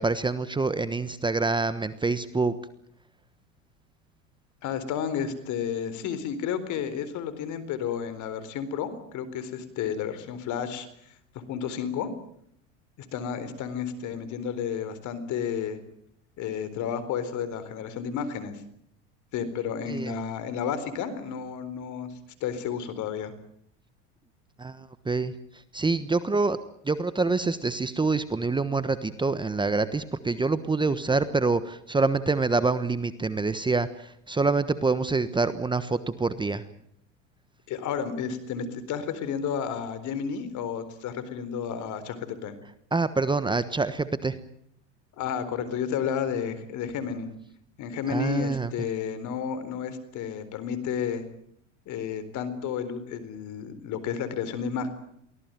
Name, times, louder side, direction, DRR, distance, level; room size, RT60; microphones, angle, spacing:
voice 1, 0.0-2.5 19.9-20.1 24.6-26.6 26.8-36.7 42.9-44.4 48.1-48.7, right 3 dB, 15° right, 13 dB, 1.2 m, -26 dB
voice 2, 4.6-10.9 11.5-12.1 13.0-15.8 16.4-18.6 19.3-22.1 22.4-23.3 37.7-42.6 45.2-47.3 47.8-51.2 51.9-54.9, left 7 dB, 50° left, 13 dB, 4.1 m, -31 dB
24.0 x 17.5 x 9.1 m, 0.71 s
hypercardioid pair, 95°, 37 cm